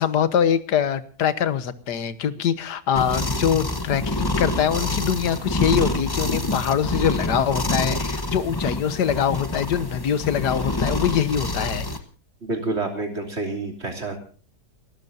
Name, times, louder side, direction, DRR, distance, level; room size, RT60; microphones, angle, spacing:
voice 1, 0.0-11.9, left 8 dB, 75° left, 14 dB, 1.7 m, -23 dB
sound 1, 2.9-12.0, left 1 dB, 15° left, 1.0 m, -27 dB
voice 2, 12.4-14.2, right 2 dB, 40° right, 2 dB, 3.5 m, -28 dB
30.0 x 13.5 x 2.7 m, 0.41 s
omnidirectional pair, 1.8 m